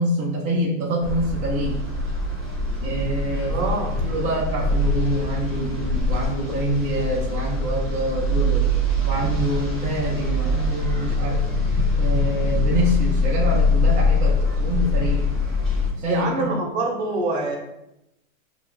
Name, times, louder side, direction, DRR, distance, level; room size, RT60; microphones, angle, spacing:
voice 1, 0.0-1.8 2.8-3.7 4.0-8.7 9.0-11.4 12.0-15.2 16.0-16.7, right 1 dB, 15° right, -6 dB, 0.7 m, -26 dB
sound 1, 1.0-15.9, left 2 dB, ahead, 0.3 m, -23 dB
voice 2, 3.5-3.9 16.1-17.6, right 2 dB, 50° right, 0 dB, 1.2 m, -25 dB
6.6 x 2.5 x 2.3 m, 0.86 s
supercardioid pair, 155°, 41 cm